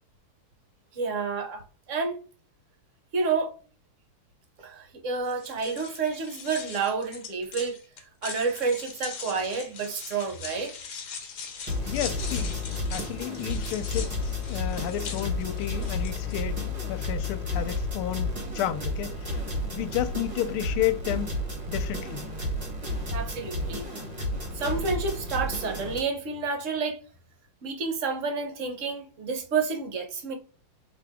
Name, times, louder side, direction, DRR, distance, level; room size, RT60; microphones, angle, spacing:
voice 1, 0.9-1.6 1.9-2.2 3.1-3.5 4.6-10.7 23.1-23.9 24.5-27.0 27.6-30.3, right 4 dB, 55° right, 0.9 m, -29 dB
sound 1, 5.2-16.4, left 5 dB, 60° left, 1.4 m, -41 dB
voice 2, 11.5-12.5 12.9-18.3 18.5-19.4 19.7-21.3 21.7-22.3, left 11 dB, 85° left, 1.5 m, -32 dB
sound 2, 11.7-26.0, left 2 dB, 25° right, 0.9 m, -32 dB
5.0 x 2.9 x 3.5 m
omnidirectional pair, 2.3 m